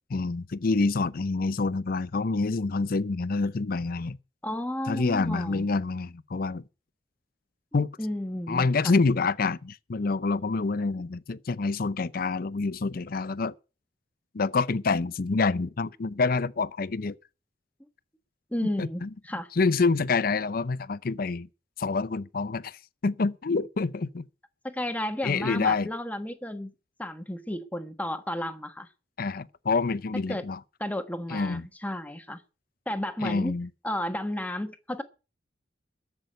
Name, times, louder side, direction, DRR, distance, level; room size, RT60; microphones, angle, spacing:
voice 1, 0.1-4.2 4.9-6.6 7.7-7.9 8.5-13.5 14.3-17.2 18.8-19.1 19.6-21.5 21.8-24.2 25.2-25.9 29.2-30.6 31.3-31.7 33.2-33.7, left 4 dB, 55° left, 0.6 m, -27 dB
voice 2, 4.4-5.7 8.0-8.9 18.5-19.5 24.6-26.7 27.0-28.9 30.3-30.4 30.8-32.4 32.9-33.6 33.8-35.0, left 1 dB, 10° left, 1.3 m, -32 dB
13.5 x 6.1 x 9.1 m
head